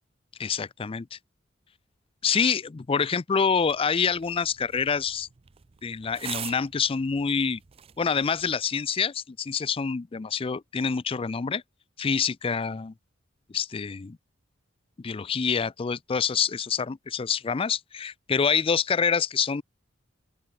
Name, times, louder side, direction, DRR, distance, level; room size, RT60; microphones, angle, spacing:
voice 1, 0.4-1.2 2.2-5.3 5.8-7.6 8.0-11.6 12.0-12.9 13.5-14.2 15.0-19.6, left 6 dB, 30° left, 0.4 m, -26 dB
sound 1, 3.5-8.6, right 9 dB, 30° right, 0.5 m, -44 dB
open air
head